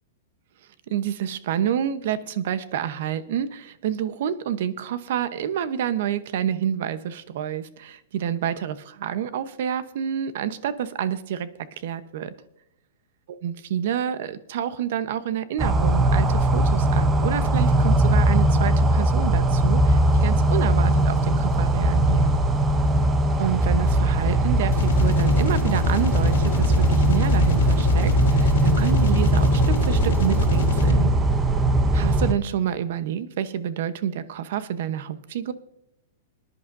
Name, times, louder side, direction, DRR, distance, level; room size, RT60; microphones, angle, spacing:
voice 1, 0.9-11.5 11.8-12.3 13.3-22.3 23.4-31.1 31.9-35.5, right 9 dB, 60° right, 12 dB, 0.9 m, -28 dB
sound 1, 15.6-32.3, right 1 dB, 15° right, 0.7 m, -20 dB
sound 2, 24.7-31.2, left 3 dB, 90° left, 1.6 m, -27 dB
24.5 x 10.5 x 2.6 m, 0.81 s
supercardioid pair, 160°, 0 cm